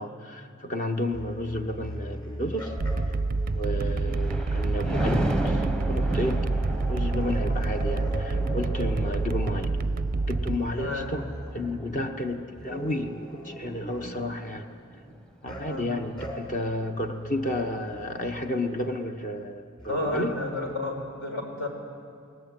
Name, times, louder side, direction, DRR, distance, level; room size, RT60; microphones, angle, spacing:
voice 1, 0.0-2.8 3.5-6.4 6.9-9.7 10.3-11.3 11.5-14.8 15.4-20.4, left 1 dB, 35° left, 5 dB, 1.1 m, -32 dB
sound 1, 1.1-11.6 12.6-14.3 15.5-15.7 16.2-16.4 17.0-18.3 19.8-20.8, equal, 20° left, 4.6 m, -38 dB
sound 2, 2.8-10.6, right 3 dB, 40° right, 0.5 m, -28 dB
Thunder, 3.7-15.2 15.7-16.0, right 1 dB, 5° left, 1.0 m, -35 dB
voice 2, 10.8-11.1 15.6-15.9 19.9-21.7, left 1 dB, 70° left, 2 dB, 4.5 m, -32 dB
21.0 x 19.0 x 9.2 m, 2.3 s
head